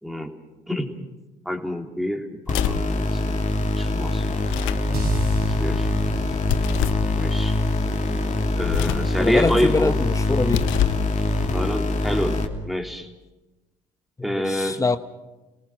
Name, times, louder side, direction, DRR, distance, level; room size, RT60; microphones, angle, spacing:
voice 1, 0.0-0.3 0.7-1.0 1.4-3.4 3.8-4.3 5.4-6.1 7.1-7.6 8.5-9.9 11.5-13.1 14.2-14.8, equal, ahead, 3 dB, 3.3 m, -27 dB
sound 1, 2.5-2.9 4.4-4.9 6.5-7.1 8.6-9.1 10.4-11.1, left 13 dB, 75° left, 0.7 m, -27 dB
sound 2, 2.5-12.5, left 2 dB, 35° left, 2.9 m, -24 dB
sound 3, 4.9-9.3, right 1 dB, 55° right, 5.2 m, -34 dB
voice 2, 9.2-10.7 14.2-15.0, left 3 dB, 15° left, 10 dB, 1.1 m, -24 dB
28.5 x 18.5 x 6.4 m, 1.1 s
hypercardioid pair, 65°, 20 cm